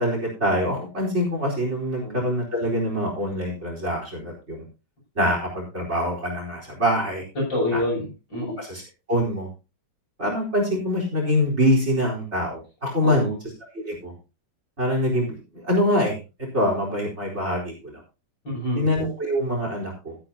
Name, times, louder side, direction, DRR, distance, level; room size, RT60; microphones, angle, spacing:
voice 1, 0.0-4.6 5.2-7.2 7.7-7.8 8.6-8.8 9.1-9.5 10.2-13.3 13.7-14.1 14.8-16.2 16.5-18.0 18.8-20.2, equal, 35° right, -1 dB, 4.5 m, -24 dB
voice 2, 7.3-8.5 13.0-13.4 18.4-18.9, left 1 dB, 85° left, -7 dB, 8.4 m, -27 dB
13.0 x 12.0 x 2.8 m, 0.29 s
omnidirectional pair, 1.9 m